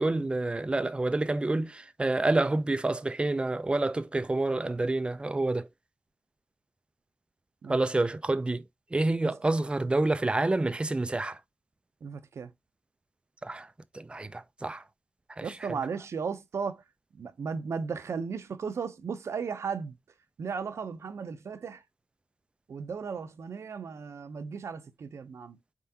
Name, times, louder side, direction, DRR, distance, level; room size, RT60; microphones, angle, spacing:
voice 1, 0.0-5.7 7.7-8.6 8.9-11.4 13.4-13.7 13.9-14.8 15.4-15.5, right 2 dB, 20° right, 0.5 m, -28 dB
voice 2, 12.0-12.5 15.4-16.8 17.1-20.0 20.4-21.8 22.7-25.6, right 5 dB, 65° right, 0.7 m, -35 dB
4.4 x 3.6 x 2.8 m
wide cardioid pair, 85°, 5 cm